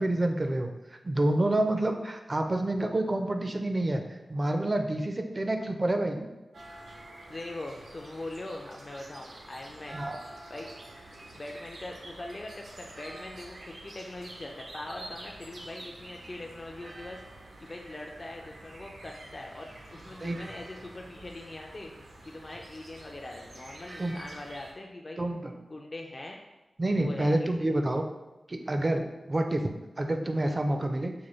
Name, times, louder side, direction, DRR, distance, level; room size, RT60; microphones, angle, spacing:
voice 1, 0.0-6.3 9.9-10.2 20.2-20.5 24.0-24.2 25.2-25.5 26.8-28.0 28.5-29.7 30.0-31.1, right 1 dB, 35° right, 5 dB, 0.4 m, -28 dB
sound 1, 6.5-24.7, right 1 dB, 80° right, 0.6 m, -48 dB
voice 2, 7.3-10.0 10.5-10.7 11.3-17.2 17.6-21.9 22.2-25.2 25.7-26.4 27.0-27.7, left 2 dB, 40° left, 1 dB, 0.3 m, -42 dB
4.6 x 2.3 x 3.0 m, 1.1 s
wide cardioid pair, 65°, 0 cm